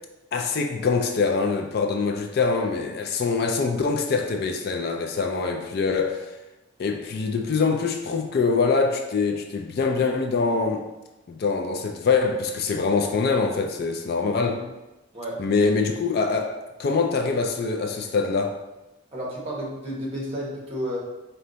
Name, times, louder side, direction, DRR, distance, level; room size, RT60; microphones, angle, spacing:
voice 1, 0.3-6.3 6.8-10.9 11.3-14.6 15.4-18.6, left 4 dB, 50° left, 4 dB, 0.3 m, -24 dB
voice 2, 14.3-14.6 15.1-15.4 19.1-21.0, equal, 30° right, -4 dB, 1.0 m, -32 dB
4.4 x 2.2 x 3.8 m, 1.0 s
head